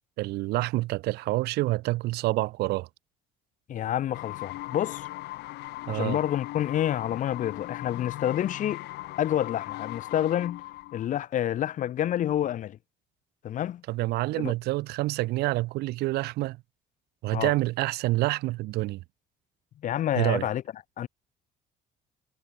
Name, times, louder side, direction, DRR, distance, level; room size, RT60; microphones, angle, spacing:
voice 1, 0.2-2.9 5.9-6.2 13.9-16.6 17.2-19.0 20.2-20.5, right 19 dB, 75° right, 0.4 m, -27 dB
voice 2, 3.7-5.1 5.9-8.8 9.2-10.6 10.9-12.8 13.4-13.8 14.3-14.5 17.3-17.5 19.8-20.6 21.0-21.1, left 11 dB, 50° left, 0.6 m, -28 dB
sound 1, 4.1-11.1, left 18 dB, 80° left, 1.0 m, -39 dB
cardioid pair, 110°, 17 cm